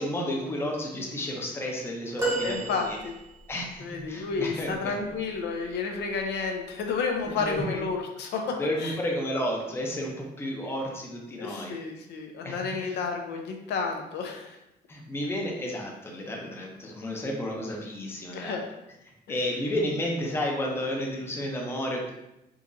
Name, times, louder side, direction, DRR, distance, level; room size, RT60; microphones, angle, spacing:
voice 1, 0.0-3.0 3.5-4.9 7.2-7.8 8.6-11.7 12.4-13.0 14.9-18.6 19.3-22.1, left 1 dB, 15° left, 0 dB, 0.5 m, -32 dB
sound 1, 2.2-3.6 6.0-6.2 7.5-7.6, right 2 dB, 15° right, 0.8 m, -31 dB
voice 2, 2.4-3.1 3.8-9.0 11.4-14.6 18.3-18.6, left 4 dB, 85° left, 3 dB, 0.6 m, -31 dB
3.8 x 2.9 x 2.5 m, 0.89 s
cardioid pair, 155°, 17 cm